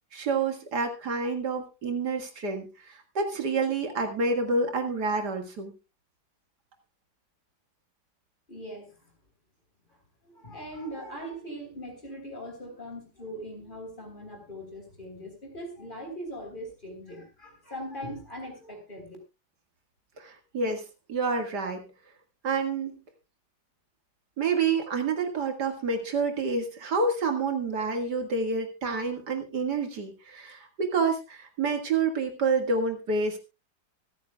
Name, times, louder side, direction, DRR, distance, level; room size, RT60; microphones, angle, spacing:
voice 1, 0.1-5.7 20.2-20.8 21.1-21.8 22.4-23.0 24.4-33.4, right 4 dB, 70° right, 5 dB, 2.4 m, -28 dB
voice 2, 8.5-9.1 10.2-19.2, equal, 30° left, 3 dB, 3.9 m, -40 dB
24.5 x 9.7 x 2.3 m, 0.27 s
omnidirectional pair, 1.8 m